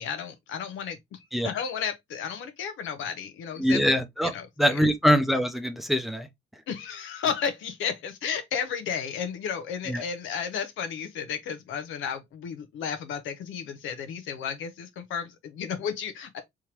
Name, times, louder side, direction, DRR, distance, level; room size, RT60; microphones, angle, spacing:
voice 1, 0.0-3.8 4.2-4.8 6.7-16.4, left 7 dB, 85° left, 0.9 m, -33 dB
voice 2, 3.6-4.3 4.6-6.3 9.9-10.0, equal, ahead, 0.7 m, -23 dB
3.6 x 3.1 x 2.9 m
cardioid pair, 90°, 20 cm